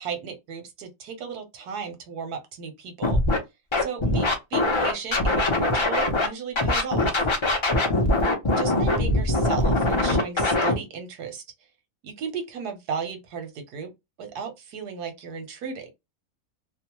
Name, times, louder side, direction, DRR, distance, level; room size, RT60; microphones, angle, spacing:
voice 1, 0.0-3.2 3.8-7.3 8.2-11.4 12.0-13.9 14.2-15.9, right 6 dB, 90° right, 1.4 m, -35 dB
Scratching (performance technique), 3.0-3.4 3.7-6.3 6.6-10.7, left 2 dB, 50° left, 0.3 m, -22 dB
3.0 x 2.1 x 2.9 m
omnidirectional pair, 1.6 m